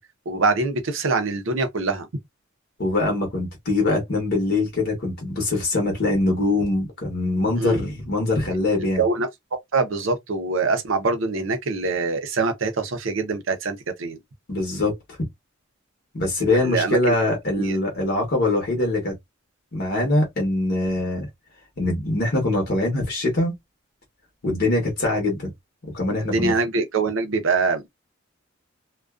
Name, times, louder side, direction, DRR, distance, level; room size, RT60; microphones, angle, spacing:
voice 1, 0.3-2.1 7.6-7.8 9.0-14.2 16.5-17.1 17.6-17.8 26.2-27.8, right 3 dB, 70° right, 0.6 m, -24 dB
voice 2, 2.8-9.0 14.5-14.9 16.1-19.2 19.7-21.3 21.8-23.5 24.4-25.5 25.9-26.5, left 2 dB, 55° left, 0.9 m, -23 dB
2.4 x 2.2 x 2.3 m
head